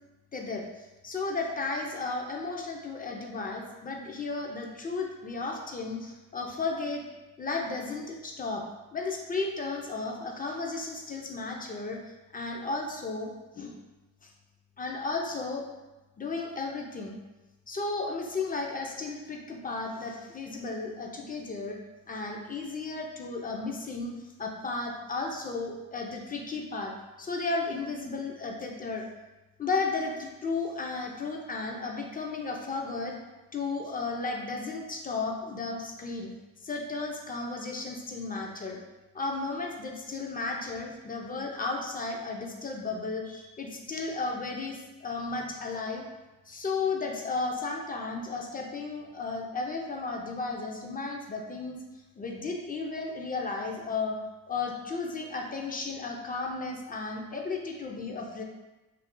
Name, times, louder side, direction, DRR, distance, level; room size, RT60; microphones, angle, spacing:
voice 1, 0.3-7.0 7.4-8.6 8.9-13.8 14.2-14.3 14.8-15.6 16.2-17.2 17.7-21.8 22.1-24.1 24.4-26.9 27.2-29.0 29.6-33.2 33.5-36.3 36.6-38.8 39.1-46.0 46.5-51.8 52.2-54.2 54.5-58.4, left 3 dB, 25° left, 1 dB, 0.4 m, -34 dB
2.4 x 2.3 x 3.6 m, 1.1 s
cardioid pair, 105°, 38 cm